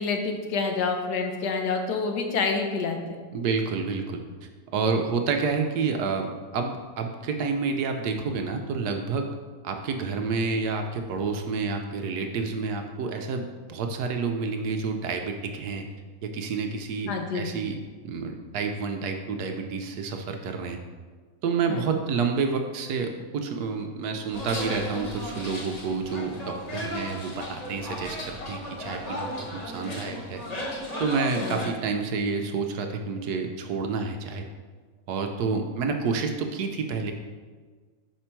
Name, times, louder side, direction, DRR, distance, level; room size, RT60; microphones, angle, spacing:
voice 1, 0.0-3.2 17.1-17.5 21.7-21.9 31.4-31.5, left 4 dB, 70° left, 4 dB, 1.2 m, -28 dB
voice 2, 3.3-4.2 4.7-9.3 9.6-15.9 16.2-17.8 18.0-20.8 21.4-30.4 31.0-34.4 35.1-37.1, right 4 dB, 70° right, 4 dB, 1.0 m, -29 dB
sound 1, 24.3-31.7, left 1 dB, 30° left, 0.8 m, -35 dB
5.6 x 5.1 x 4.4 m, 1.5 s
omnidirectional pair, 1.9 m